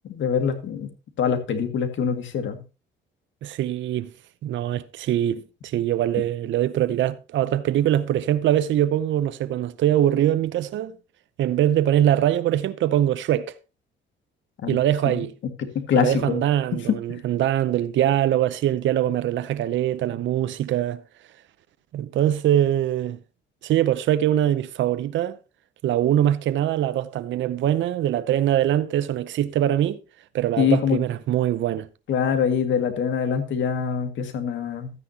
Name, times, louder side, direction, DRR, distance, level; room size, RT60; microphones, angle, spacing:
voice 1, 0.1-0.9 1.2-2.6 14.6-14.8 15.1-15.2 15.8-16.4 16.9-17.2 30.6-31.0 32.1-34.9, left 7 dB, 70° left, 2.0 m, -24 dB
voice 2, 3.4-4.1 4.4-11.0 11.4-13.6 14.7-15.3 15.9-21.0 21.9-23.2 23.6-25.4 25.8-30.0 30.3-31.9, right 11 dB, 70° right, 0.7 m, -23 dB
13.0 x 9.7 x 2.8 m
cardioid pair, 90°, 20 cm